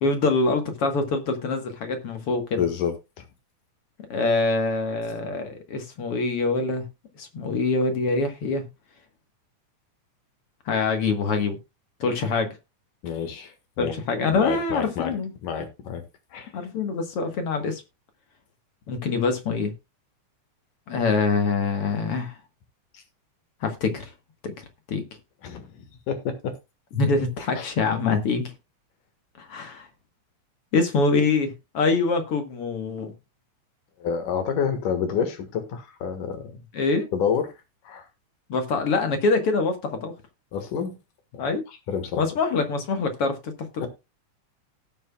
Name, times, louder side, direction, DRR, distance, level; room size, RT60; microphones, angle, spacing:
voice 1, 0.0-2.7 4.1-6.8 7.2-8.6 10.7-11.6 12.0-12.6 13.8-15.3 16.5-17.8 18.9-19.7 20.9-22.4 23.6-24.1 24.4-25.0 26.9-28.5 29.4-29.9 30.7-33.1 36.7-37.1 38.5-40.1 41.4-41.6 42.2-43.9, left 3 dB, 55° left, 2.0 m, -25 dB
voice 2, 2.6-2.9 13.0-13.9 14.3-15.1 15.4-16.0 16.3-16.5 22.9-23.0 25.4-25.7 26.1-26.6 27.6-27.7 34.0-36.5 37.1-37.5 37.8-38.1 40.5-41.0 41.3-41.4 41.9-42.2 43.8-43.9, left 7 dB, 80° left, 3.1 m, -28 dB
18.0 x 7.6 x 2.3 m
omnidirectional pair, 3.7 m